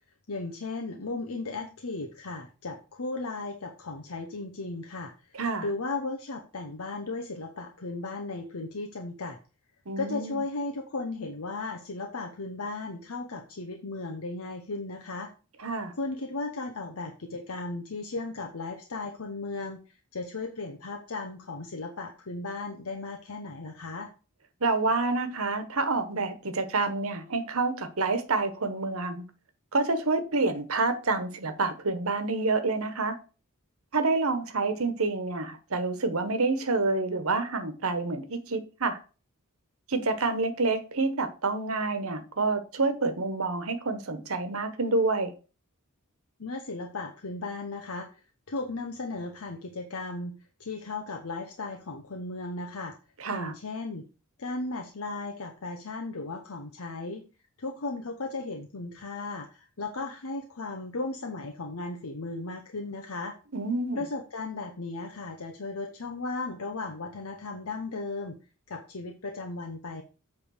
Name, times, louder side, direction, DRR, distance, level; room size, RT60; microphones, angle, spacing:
voice 1, 0.3-9.4 10.0-15.3 16.0-24.1 46.4-48.2 48.5-50.3 50.6-53.0 53.3-54.1 54.4-57.2 57.6-63.4 64.0-68.4 68.7-70.0, left 3 dB, 65° left, 0.9 m, -36 dB
voice 2, 5.3-5.7 9.9-10.4 15.6-15.9 24.6-29.2 29.7-33.1 33.9-39.0 39.9-45.3 53.2-53.5 63.5-64.0, right 3 dB, 65° right, 1.2 m, -28 dB
8.2 x 3.5 x 6.4 m
head